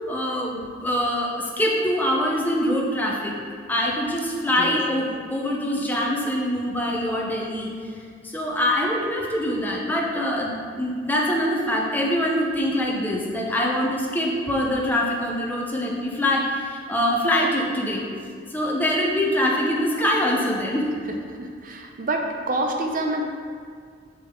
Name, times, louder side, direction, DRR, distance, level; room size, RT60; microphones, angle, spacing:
voice 1, 0.1-3.3 3.7-7.7 8.2-18.1 18.5-20.9, equal, 10° left, -2 dB, 0.9 m, -24 dB
voice 2, 21.4-23.2, right 1 dB, 45° right, 2 dB, 0.7 m, -27 dB
6.8 x 6.2 x 3.8 m, 2.1 s
head